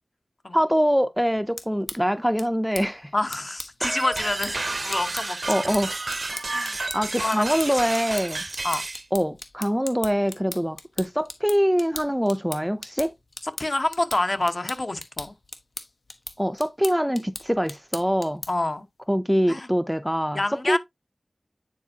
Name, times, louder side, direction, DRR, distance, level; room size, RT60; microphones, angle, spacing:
voice 1, 0.5-3.1 5.5-6.1 6.9-8.4 9.1-13.1 16.4-18.4 19.1-20.4 20.6-20.8, equal, 5° right, 0.5 m, -24 dB
sound 1, 1.3-18.7, left 2 dB, 75° left, 1.1 m, -40 dB
voice 2, 3.1-5.6 6.5-6.8 7.2-7.4 8.6-8.8 13.6-15.3 18.5-18.8 19.5-19.7 20.3-20.8, left 2 dB, 45° left, 1.0 m, -27 dB
sound 2, 3.8-9.0, right 2 dB, 60° right, 0.6 m, -31 dB
9.5 x 4.4 x 2.7 m
wide cardioid pair, 65°, 0 cm